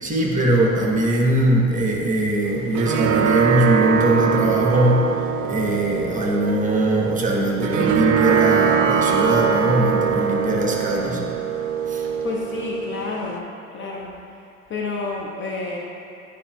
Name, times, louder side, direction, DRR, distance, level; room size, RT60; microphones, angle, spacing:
voice 1, 0.0-5.1 5.4-11.2 11.9-12.0, right 1 dB, 20° right, -1 dB, 1.0 m, -21 dB
sound 1, 2.4-13.4, right 7 dB, 65° right, 0.5 m, -22 dB
voice 2, 12.2-13.5 13.7-14.1 14.7-15.8, left 3 dB, 30° left, -2 dB, 0.7 m, -29 dB
9.8 x 5.0 x 2.2 m, 2.7 s
figure-of-eight pair, 70°, 41 cm